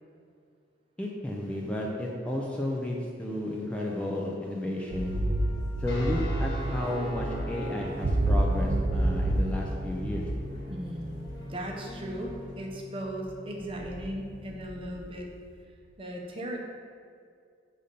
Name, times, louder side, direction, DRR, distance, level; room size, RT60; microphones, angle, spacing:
voice 1, 1.0-5.2 5.8-10.3, left 1 dB, 5° left, -2 dB, 0.4 m, -32 dB
sound 1, 4.9-12.6, equal, 25° left, 1.1 m, -51 dB
Common Disorder (Vaccum Reduct), 4.9-12.5 13.2-13.3 13.6-15.3, right 1 dB, 80° right, 0.5 m, -30 dB
sound 2, 5.8-14.8, left 1 dB, 60° left, 1.5 m, -42 dB
voice 2, 10.7-15.3 16.0-16.6, right 1 dB, 30° right, 0 dB, 0.7 m, -37 dB
5.3 x 4.1 x 5.1 m, 2.2 s
head